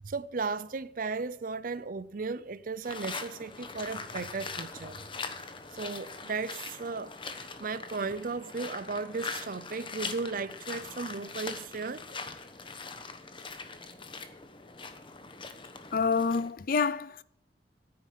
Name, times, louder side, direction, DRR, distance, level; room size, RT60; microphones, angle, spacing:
voice 1, 0.0-5.0 5.8-12.0, right 4 dB, 50° right, 0.6 m, -35 dB
sound 1, 2.8-16.5, left 4 dB, 30° left, 1.0 m, -42 dB
voice 2, 15.9-17.2, left 5 dB, 50° left, 0.5 m, -27 dB
9.6 x 9.4 x 7.5 m
head